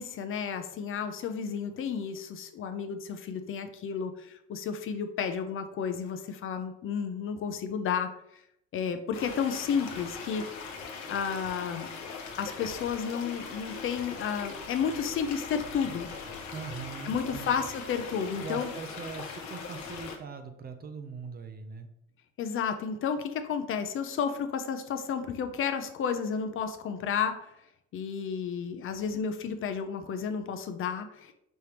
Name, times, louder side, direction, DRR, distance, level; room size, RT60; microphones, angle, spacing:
voice 1, 0.0-8.1 8.7-10.4 11.1-11.9 12.4-16.1 17.0-18.7 22.4-27.5 27.9-31.3, left 7 dB, 45° left, 7 dB, 0.5 m, -32 dB
sound 1, 9.1-20.2, left 5 dB, 65° left, 0.9 m, -40 dB
voice 2, 16.5-17.5 18.4-21.9, right 5 dB, 30° right, 7 dB, 0.5 m, -41 dB
5.4 x 3.3 x 2.9 m, 0.80 s
cardioid pair, 120°, 31 cm